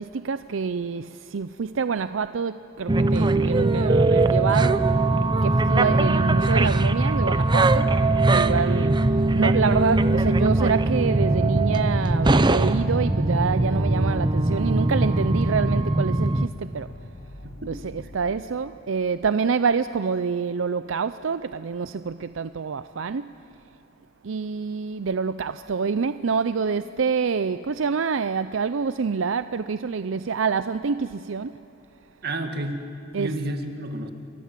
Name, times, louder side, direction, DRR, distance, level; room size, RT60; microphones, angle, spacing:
voice 1, 0.0-4.9 5.1-8.0 8.3-8.9 9.3-16.9 17.7-23.3 24.2-31.6 33.1-33.3, right 5 dB, 80° right, 0.5 m, -26 dB
sound 1, 2.9-16.5, right 2 dB, 25° right, 0.7 m, -21 dB
sound 2, 6.3-18.2, left 1 dB, 70° left, 1.5 m, -44 dB
voice 2, 8.5-8.9 17.4-17.6 32.2-32.8 33.2-34.1, right 1 dB, 55° right, 2.0 m, -30 dB
29.5 x 23.0 x 7.5 m
head